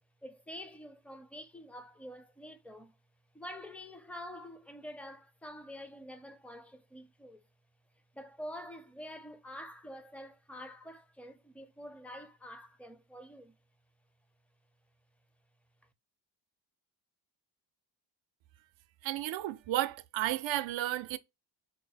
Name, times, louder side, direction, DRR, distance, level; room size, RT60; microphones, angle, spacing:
voice 1, 0.2-2.9 3.3-7.4 8.1-13.6, equal, 5° left, 0.4 m, -47 dB
voice 2, 19.0-21.2, right 14 dB, 75° right, 0.6 m, -33 dB
4.6 x 2.0 x 4.0 m
cardioid pair, 120°, 46 cm